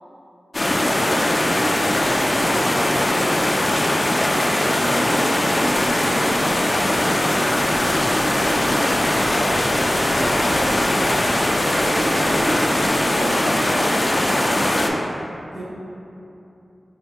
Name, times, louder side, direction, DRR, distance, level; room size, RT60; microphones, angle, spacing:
sound 1, 0.5-14.9, left 1 dB, 35° left, 0.3 m, -20 dB
voice 1, 0.8-1.9 2.4-2.7 4.3-6.7 8.4-9.9 11.8-14.6, right 1 dB, 80° right, -8 dB, 0.5 m, -33 dB
sound 2, 3.4-11.4, equal, 55° left, 1.2 m, -42 dB
sound 3, 7.5-12.5, equal, ahead, 0.8 m, -36 dB
voice 2, 9.9-10.2 10.6-11.0 15.5-15.6, equal, 35° right, -7 dB, 1.0 m, -37 dB
4.3 x 3.2 x 2.3 m, 2.8 s
cardioid pair, 60°, 0 cm